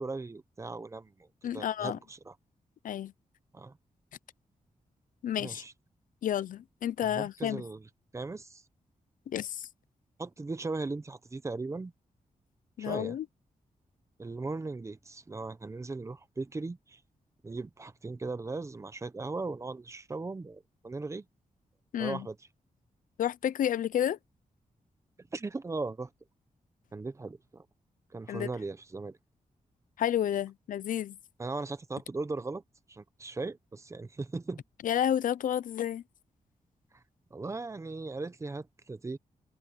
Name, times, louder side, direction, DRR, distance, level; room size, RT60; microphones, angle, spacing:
voice 1, 0.0-1.3 1.5-2.3 3.5-3.7 5.4-5.7 7.0-7.9 8.1-8.6 10.2-11.9 12.8-13.2 14.2-17.0 17.4-21.2 22.0-22.4 25.2-26.1 26.9-27.6 28.1-29.2 31.4-32.6 32.9-34.6 37.3-39.2, right 3 dB, 20° right, 0.8 m, -38 dB
voice 2, 1.4-2.0 2.8-3.1 5.2-5.6 6.2-7.6 9.3-9.7 12.8-13.3 21.9-22.3 23.2-24.2 28.3-28.5 30.0-31.2 34.8-36.0, left 10 dB, 85° left, 0.5 m, -30 dB
wide cardioid pair, 160°, 13 cm